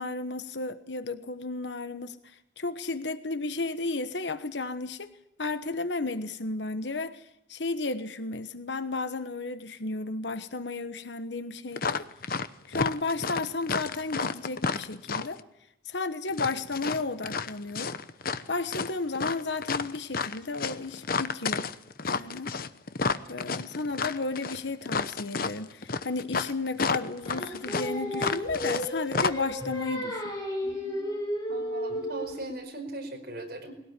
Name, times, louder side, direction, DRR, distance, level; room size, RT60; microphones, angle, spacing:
voice 1, 0.0-5.1 5.4-12.1 12.7-15.4 15.8-18.0 18.5-21.7 22.1-22.5 23.3-30.4, left 3 dB, 75° left, 11 dB, 1.2 m, -33 dB
sound 1, 11.8-12.5 12.7-15.4 16.3-18.4 18.7-28.9 29.1-29.3, left 4 dB, 55° left, 0.9 m, -30 dB
Singing, 27.3-32.5, equal, 20° left, 6.8 m, -33 dB
voice 2, 30.6-31.1 31.5-33.7, right 1 dB, 55° right, 3 dB, 5.2 m, -39 dB
21.5 x 17.5 x 9.8 m, 0.77 s
head